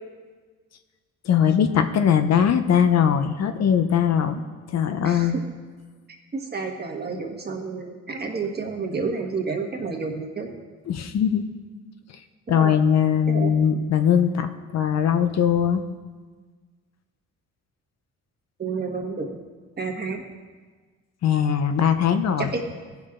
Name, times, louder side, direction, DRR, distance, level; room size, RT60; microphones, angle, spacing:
voice 1, 1.2-4.4 4.7-5.4 10.9-11.4 12.5-15.8 21.2-22.5, left 8 dB, 60° left, 8 dB, 0.7 m, -20 dB
voice 2, 5.0-5.4 6.3-10.5 12.5-12.7 13.3-13.5 18.6-19.3 19.8-20.2 22.4-22.5, right 4 dB, 35° right, 2 dB, 1.5 m, -30 dB
15.5 x 6.1 x 3.7 m, 1.4 s
cardioid pair, 90°, 30 cm